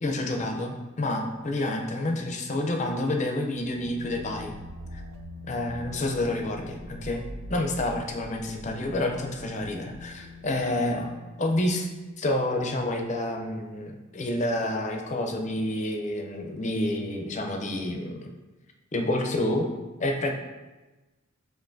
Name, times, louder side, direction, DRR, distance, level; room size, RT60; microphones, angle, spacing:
voice 1, 0.0-4.5 4.9-5.0 5.5-7.2 7.5-11.1 11.4-11.9 12.2-18.3 18.9-19.7 20.0-20.3, left 1 dB, 35° left, 3 dB, 0.5 m, -29 dB
sound 1, 3.6-12.1, left 1 dB, 75° right, 0.4 m, -43 dB
7.4 x 2.6 x 2.6 m, 1.2 s
head